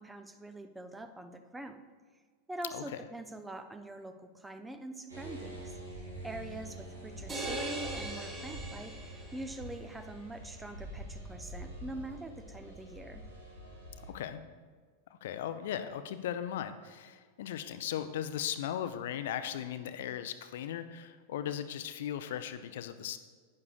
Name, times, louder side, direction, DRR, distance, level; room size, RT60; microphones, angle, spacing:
voice 1, 0.0-1.8 2.5-9.0 9.3-13.2, right 1 dB, 10° right, 9 dB, 0.5 m, -44 dB
sound 1, 5.1-14.1, right 1 dB, 80° right, 2.5 m, -46 dB
sound 2, 7.3-9.6, right 2 dB, 25° right, 2.8 m, -40 dB
voice 2, 14.1-14.4 15.2-23.2, left 10 dB, 55° left, 10 dB, 0.5 m, -37 dB
11.5 x 9.5 x 2.3 m, 1.5 s
figure-of-eight pair, 90°, 0 cm